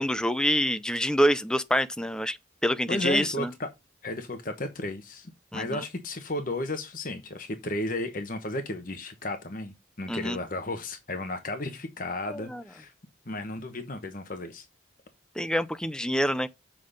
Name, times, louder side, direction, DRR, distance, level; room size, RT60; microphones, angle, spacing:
voice 1, 0.0-2.4 2.6-3.5 5.5-5.8 10.1-10.4 12.3-12.6 15.4-16.5, equal, 5° left, 0.5 m, -26 dB
voice 2, 2.9-3.7 4.0-12.9 13.3-14.6, left 2 dB, 45° left, 1.1 m, -34 dB
7.6 x 5.7 x 5.0 m
head